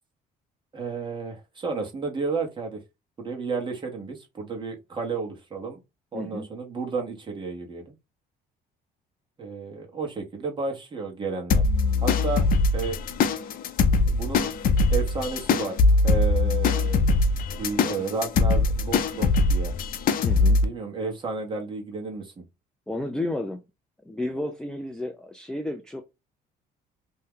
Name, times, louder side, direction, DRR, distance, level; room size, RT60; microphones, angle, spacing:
voice 1, 0.7-2.8 3.2-5.8 6.1-7.9 9.4-11.6 12.0-12.4 12.7-13.0 14.1-14.5 14.9-15.8 16.0-17.0 17.6-19.7 20.6-22.4, right 4 dB, 30° right, 1.1 m, -32 dB
voice 2, 6.1-6.5 20.2-20.6 22.9-23.6 24.0-26.0, left 1 dB, 5° left, 0.4 m, -32 dB
sound 1, 11.5-20.6, left 3 dB, 55° left, 0.6 m, -22 dB
2.7 x 2.2 x 3.6 m
cardioid pair, 110°, 17 cm